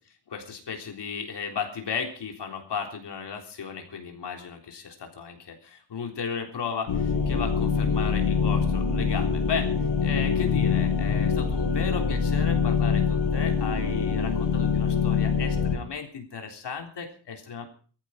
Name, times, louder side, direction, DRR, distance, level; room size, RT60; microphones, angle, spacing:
voice 1, 0.3-9.7 10.0-17.7, left 6 dB, 65° left, 3 dB, 3.6 m, -35 dB
sound 1, 6.9-15.8, left 6 dB, 80° left, 5.3 m, -24 dB
18.0 x 14.5 x 5.1 m, 0.42 s
wide cardioid pair, 130°, 45 cm